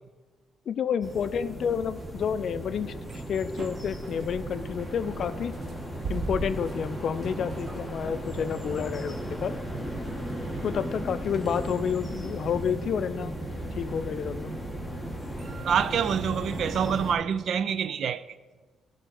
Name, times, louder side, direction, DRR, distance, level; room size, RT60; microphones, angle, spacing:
voice 1, 0.7-2.9 3.3-5.5 6.1-9.5 10.6-13.3 13.8-14.5, left 7 dB, 60° left, 0.4 m, -30 dB
sound 1, 1.0-17.1, right 1 dB, 5° right, 1.5 m, -36 dB
sound 2, 1.7-17.1, right 3 dB, 50° right, 0.8 m, -44 dB
voice 2, 15.6-18.2, right 7 dB, 65° right, 0.4 m, -26 dB
11.0 x 3.9 x 6.4 m
cardioid pair, 90°, 0 cm